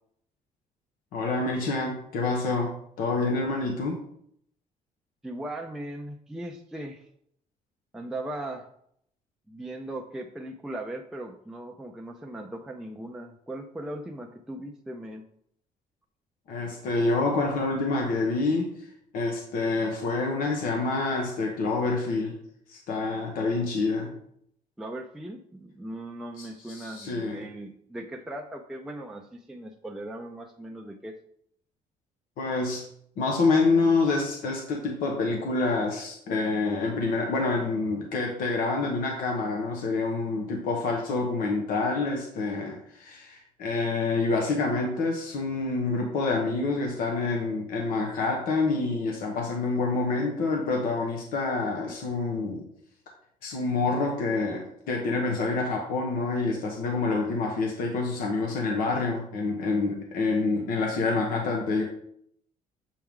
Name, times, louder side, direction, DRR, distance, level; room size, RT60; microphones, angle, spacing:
voice 1, 1.1-4.0 16.5-18.7 19.1-22.3 22.7-24.1 26.4-27.4 32.4-32.8 33.2-52.7 53.4-61.8, left 3 dB, 75° left, 1 dB, 1.2 m, -27 dB
voice 2, 5.2-7.1 7.9-8.7 9.5-15.2 24.8-31.1, right 1 dB, 5° right, 1 dB, 0.4 m, -38 dB
7.4 x 4.5 x 3.6 m, 0.68 s
cardioid pair, 170°, 15 cm